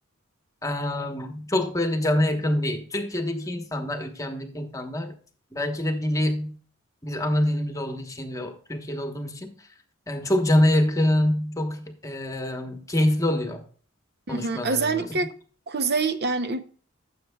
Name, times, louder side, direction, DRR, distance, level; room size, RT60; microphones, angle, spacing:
voice 1, 0.6-5.1 5.5-6.6 7.0-9.5 10.1-13.6 14.3-15.1, left 1 dB, 15° left, 5 dB, 1.1 m, -25 dB
voice 2, 14.3-15.3 15.7-16.6, right 4 dB, 50° right, 9 dB, 0.7 m, -25 dB
15.5 x 7.3 x 2.3 m, 0.42 s
head